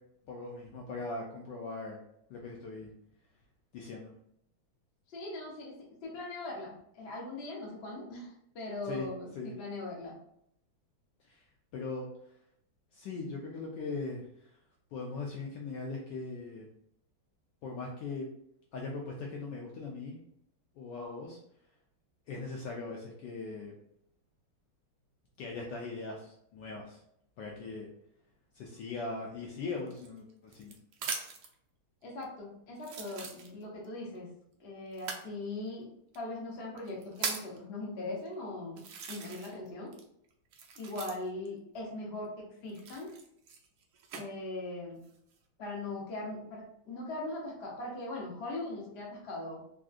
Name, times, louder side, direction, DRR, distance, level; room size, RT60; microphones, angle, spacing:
voice 1, 0.3-2.0 2.3-2.9 3.7-4.1 8.8-9.1 9.4-9.5 11.2-11.4 11.7-12.1 12.9-14.5 14.9-16.7 17.6-18.3 18.7-20.2 20.8-21.4 22.3-23.7 25.4-27.0 27.4-27.9 28.5-30.8, left 3 dB, 75° left, -1 dB, 1.0 m, -40 dB
voice 2, 5.1-5.7 6.0-10.2 32.0-34.3 34.6-35.9 36.1-38.8 39.1-39.9 40.8-43.1 44.2-45.0 45.6-49.6, left 2 dB, 55° left, -3 dB, 0.6 m, -40 dB
sound 1, 29.9-31.5 32.2-32.3 32.8-33.9 34.9-35.3 36.1-36.2 36.8-37.6 38.3-38.4 38.8-39.7 39.9-41.5 42.7-44.2 44.9-45.4, right 5 dB, 80° right, 0.9 m, -40 dB
3.5 x 2.5 x 2.4 m, 0.73 s
omnidirectional pair, 2.3 m